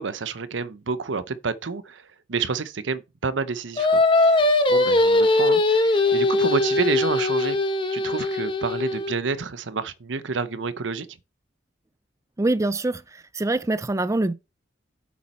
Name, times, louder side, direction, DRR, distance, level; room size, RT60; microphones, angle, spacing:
voice 1, 0.0-2.0 2.3-7.6 7.9-11.1, right 4 dB, 80° right, 0.8 m, -29 dB
Singing, 3.8-9.1, left 2 dB, 25° left, 1.1 m, -20 dB
voice 2, 12.4-14.3, right 2 dB, 15° right, 0.4 m, -24 dB
8.6 x 7.2 x 4.3 m
head